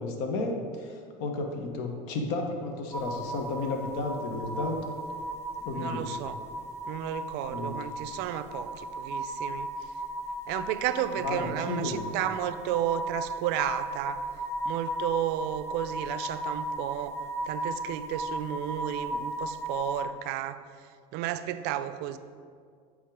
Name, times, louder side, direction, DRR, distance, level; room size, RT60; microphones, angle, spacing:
voice 1, 0.0-4.9 5.6-6.1 7.5-7.7 11.2-12.0, left 2 dB, 65° left, 3 dB, 1.1 m, -33 dB
sound 1, 2.9-20.0, right 1 dB, 15° left, 1.1 m, -36 dB
voice 2, 5.7-6.4 6.9-9.7 10.5-14.2 14.6-17.2 17.5-20.6 21.1-22.2, right 11 dB, 60° right, 12 dB, 0.4 m, -32 dB
8.4 x 3.6 x 4.6 m, 2.1 s
supercardioid pair, 105°, 19 cm